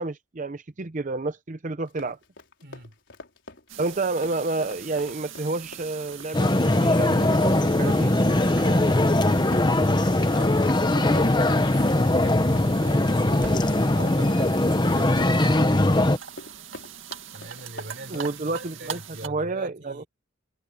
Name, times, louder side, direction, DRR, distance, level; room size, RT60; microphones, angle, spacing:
voice 1, 0.0-2.2 3.8-8.2 18.1-20.0, right 3 dB, 40° right, 0.7 m, -30 dB
Run, 1.8-18.3, left 2 dB, 65° left, 5.5 m, -45 dB
voice 2, 2.6-2.9 7.9-10.0 10.3-15.9 17.3-20.1, right 1 dB, 55° right, 3.5 m, -41 dB
sound 1, 3.7-19.3, right 7 dB, 80° right, 2.1 m, -42 dB
sound 2, 6.3-16.2, left 1 dB, 20° left, 1.0 m, -21 dB
head